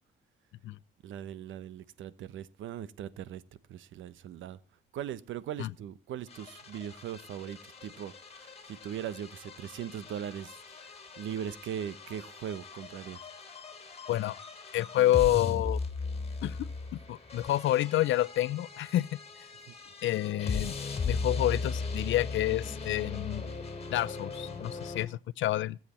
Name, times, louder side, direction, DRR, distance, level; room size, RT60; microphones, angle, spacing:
voice 1, 1.0-3.4 3.7-4.6 4.9-10.6 10.8-13.2 19.7-19.8, right 9 dB, 75° right, 1.1 m, -40 dB
sound 1, 6.3-25.1, left 4 dB, 30° left, 3.8 m, -38 dB
voice 2, 14.1-14.4 14.7-15.8 16.4-16.6 17.1-19.2 20.0-20.8 21.1-23.5 23.9-25.8, left 14 dB, 75° left, 0.7 m, -28 dB
20.0 x 7.9 x 4.3 m
cardioid pair, 90°, 20 cm